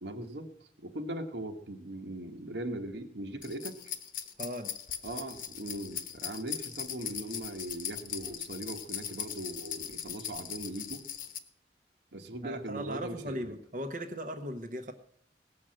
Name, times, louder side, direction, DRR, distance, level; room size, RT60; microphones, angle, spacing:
voice 1, 0.0-3.9 5.0-11.0 12.1-13.5, right 1 dB, 90° right, 5 dB, 1.4 m, -40 dB
sound 1, 3.4-11.4, left 9 dB, 50° left, 1.1 m, -40 dB
voice 2, 4.4-4.7 12.4-14.9, equal, 45° right, 5 dB, 0.9 m, -38 dB
18.0 x 6.3 x 7.5 m, 0.70 s
head